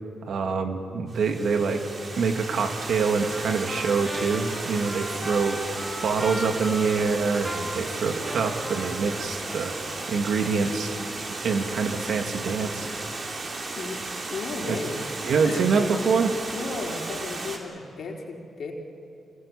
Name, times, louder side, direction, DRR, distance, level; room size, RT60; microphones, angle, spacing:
voice 1, 0.3-1.8 2.2-5.6 6.0-9.7 10.1-10.9 11.4-12.9 14.7-14.8 15.2-16.3, right 5 dB, 70° right, 5 dB, 2.2 m, -25 dB
Water, 1.1-17.6, right 3 dB, 50° right, 3.7 m, -35 dB
Trumpet, 3.2-9.8, equal, 5° right, 2.4 m, -38 dB
voice 2, 14.3-15.0 15.4-15.6 16.5-18.7, left 4 dB, 65° left, 1 dB, 3.9 m, -34 dB
25.5 x 20.0 x 8.7 m, 2.6 s
supercardioid pair, 60°, 0 cm